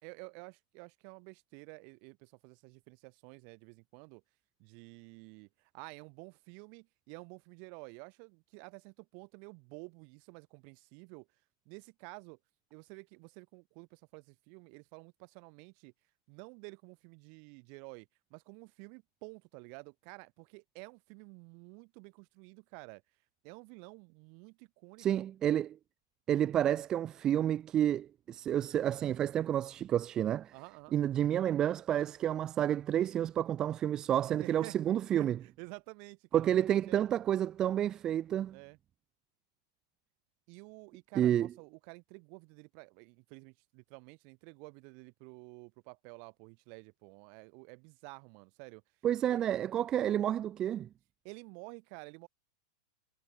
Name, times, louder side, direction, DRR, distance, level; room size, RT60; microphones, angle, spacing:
voice 1, 0.0-4.2 4.6-11.3 11.7-12.4 12.7-15.9 16.3-23.0 23.4-25.2 30.5-31.0 34.3-34.8 35.1-37.0 38.5-38.8 40.5-48.8 49.3-49.4 51.2-52.3, right 40 dB or more, 50° right, 4.3 m, -51 dB
voice 2, 25.0-25.8 26.3-30.5 30.9-35.4 36.3-38.6 41.2-41.5 49.0-50.9, right 11 dB, 30° right, 1.0 m, -30 dB
hypercardioid pair, 125°, 2 cm